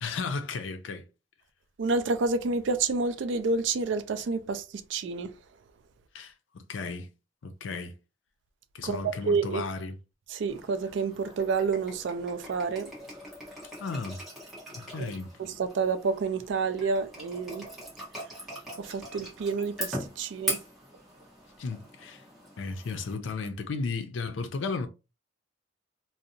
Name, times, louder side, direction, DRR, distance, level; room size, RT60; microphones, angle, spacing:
voice 1, 0.0-1.1 6.1-7.1 7.4-8.0 8.7-10.0 13.8-14.2 14.7-15.4 21.6-22.2 22.6-24.9, left 4 dB, 75° left, 0.5 m, -34 dB
voice 2, 1.8-4.6 4.9-5.3 8.8-9.6 10.3-12.9 15.0-15.1 15.4-17.7 18.8-20.6, right 4 dB, 70° right, 0.4 m, -29 dB
sound 1, 10.5-23.1, equal, ahead, 1.1 m, -41 dB
2.6 x 2.0 x 2.5 m
head